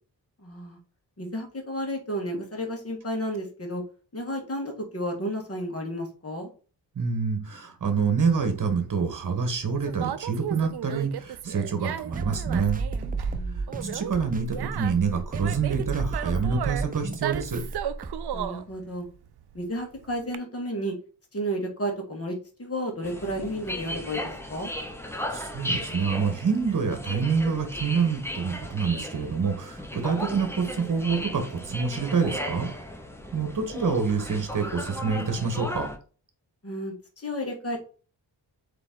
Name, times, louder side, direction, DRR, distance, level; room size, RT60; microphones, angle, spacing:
voice 1, 0.4-0.8 1.2-3.8 4.1-6.5 13.3-13.8 18.3-19.1 19.5-20.9 21.3-24.7 36.6-37.8, equal, 35° left, 1 dB, 1.7 m, -32 dB
voice 2, 6.9-12.8 13.8-17.7 25.3-32.7 33.3-35.9, right 5 dB, 45° right, 6 dB, 1.3 m, -27 dB
Conversation, 8.5-20.4, right 10 dB, 65° right, 0.5 m, -36 dB
sound 1, 12.1-18.5, right 3 dB, 20° right, 0.6 m, -33 dB
sound 2, 23.0-36.0, left 1 dB, 5° left, 0.9 m, -36 dB
3.9 x 3.3 x 3.8 m, 0.38 s
cardioid pair, 70°, 43 cm